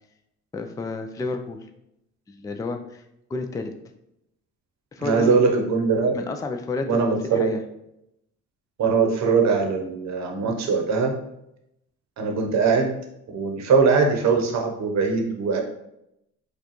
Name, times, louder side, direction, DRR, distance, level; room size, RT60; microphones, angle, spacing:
voice 1, 0.5-1.7 2.3-3.0 3.3-3.7 4.9-5.4 6.1-7.6, left 3 dB, 10° left, 5 dB, 0.3 m, -31 dB
voice 2, 5.0-6.2 6.9-7.5 8.8-11.2 12.2-13.0 13.3-15.6, right 5 dB, 65° right, 3 dB, 0.8 m, -21 dB
4.6 x 2.4 x 3.0 m, 0.82 s
cardioid pair, 90°, 30 cm